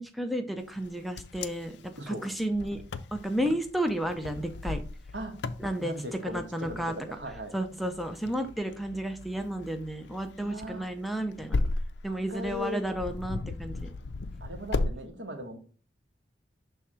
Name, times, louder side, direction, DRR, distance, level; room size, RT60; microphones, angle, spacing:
voice 1, 0.0-2.8 3.1-4.8 5.6-5.9 6.2-7.0 7.5-11.6 12.0-13.9, right 1 dB, ahead, 5 dB, 0.5 m, -32 dB
Wind, 0.8-14.9, left 3 dB, 70° left, 0.4 m, -36 dB
voice 2, 5.8-7.5 10.4-10.9 12.1-12.9 14.4-15.6, equal, 75° right, 4 dB, 1.3 m, -38 dB
6.3 x 3.4 x 4.3 m, 0.40 s
head